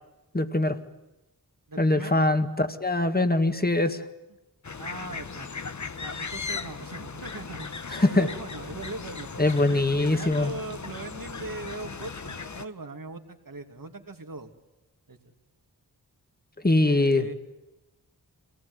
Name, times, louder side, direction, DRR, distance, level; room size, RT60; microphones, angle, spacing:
voice 1, 0.3-0.8 1.8-4.0 7.9-8.3 9.4-10.5 16.6-17.2, left 2 dB, 25° left, 8 dB, 1.9 m, -23 dB
voice 2, 1.7-2.2 4.8-5.5 6.0-14.5 15.1-15.3 16.8-17.3, right 2 dB, 60° right, 5 dB, 2.6 m, -39 dB
sound 1, 4.6-12.7, left 5 dB, 50° left, 1.1 m, -37 dB
26.0 x 18.5 x 9.7 m, 1.1 s
wide cardioid pair, 60°, 38 cm